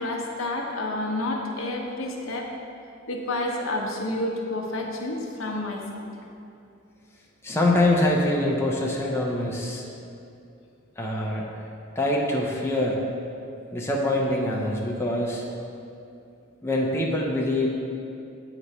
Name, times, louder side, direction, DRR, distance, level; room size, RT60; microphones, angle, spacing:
voice 1, 0.0-2.5 3.1-6.0, left 2 dB, 80° left, 0 dB, 0.8 m, -29 dB
voice 2, 7.4-9.8 11.0-11.4 12.0-13.0 13.7-15.4 16.6-17.8, left 1 dB, 15° left, -3 dB, 0.6 m, -24 dB
8.0 x 3.0 x 5.4 m, 2.6 s
head